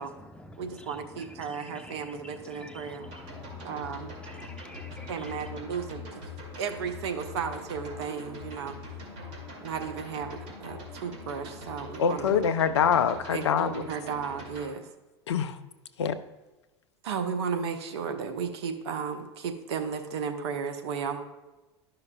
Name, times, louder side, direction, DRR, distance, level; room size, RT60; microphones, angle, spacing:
voice 1, 0.0-5.8, left 1 dB, 5° left, 0.8 m, -48 dB
voice 2, 0.6-3.0 3.6-4.1 5.1-6.1 6.6-8.8 9.6-12.3 13.3-14.9 17.0-21.2, right 6 dB, 70° right, 0.8 m, -34 dB
sound 1, 3.0-14.7, left 2 dB, 50° right, 2.2 m, -43 dB
voice 3, 12.0-13.7 15.3-15.6 16.0-16.2, left 7 dB, 80° left, 0.5 m, -24 dB
12.0 x 5.8 x 2.2 m
hypercardioid pair, 80°, 14 cm